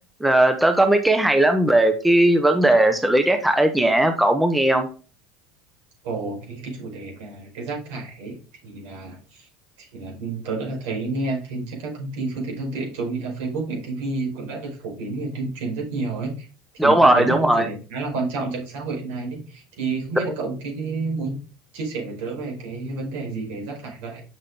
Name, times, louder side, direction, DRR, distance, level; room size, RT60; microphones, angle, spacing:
voice 1, 0.2-4.9 16.8-17.7, right 1 dB, 5° right, 6 dB, 1.2 m, -17 dB
voice 2, 6.0-9.5 9.8-16.5 16.8-21.4 21.7-24.2, right 3 dB, 75° right, -1 dB, 5.1 m, -30 dB
7.6 x 6.4 x 3.8 m, 0.36 s
hypercardioid pair, 85°, 0 cm